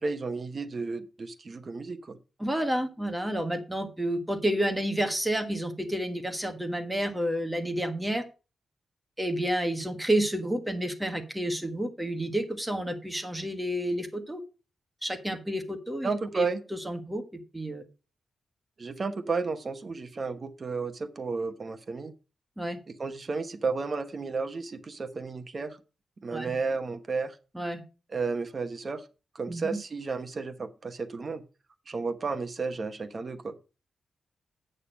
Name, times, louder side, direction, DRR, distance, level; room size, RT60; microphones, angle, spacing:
voice 1, 0.0-2.2 16.0-16.6 18.8-22.1 23.0-25.8 26.2-27.4 28.1-29.0 29.3-31.4 31.9-33.6, right 4 dB, 35° right, 9 dB, 1.0 m, -32 dB
voice 2, 2.4-8.2 9.2-14.4 15.0-16.5 16.7-17.2 17.5-17.8 22.6-22.8 26.3-26.5 27.5-27.8 29.5-29.8, right 1 dB, 5° right, 6 dB, 1.5 m, -30 dB
8.6 x 6.7 x 5.1 m, 0.32 s
wide cardioid pair, 155°, 0 cm